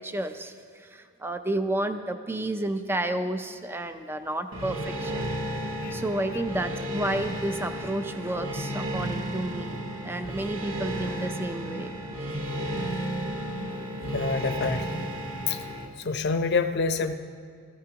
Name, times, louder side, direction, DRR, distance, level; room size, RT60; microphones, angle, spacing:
voice 1, 0.0-12.1, right 1 dB, 10° right, 8 dB, 0.4 m, -31 dB
sound 1, 4.5-15.9, right 1 dB, 75° right, 1.3 m, -33 dB
voice 2, 14.0-15.1 15.5-15.6 16.0-17.1, left 4 dB, 55° left, 8 dB, 0.7 m, -27 dB
19.5 x 14.0 x 2.9 m, 2.1 s
head